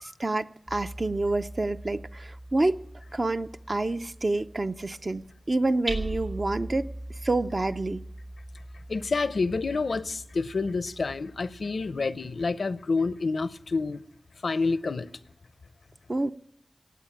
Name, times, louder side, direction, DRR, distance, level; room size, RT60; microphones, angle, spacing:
voice 1, 0.0-2.8 3.1-6.9 7.2-8.0 16.1-16.3, right 2 dB, 50° right, 0.6 m, -28 dB
Hammer, 0.7-12.4, right 1 dB, 80° right, 3.4 m, -41 dB
voice 2, 8.9-14.0 14.4-15.1, left 4 dB, 85° left, 0.6 m, -28 dB
17.5 x 8.2 x 8.6 m
wide cardioid pair, 50°, 0 cm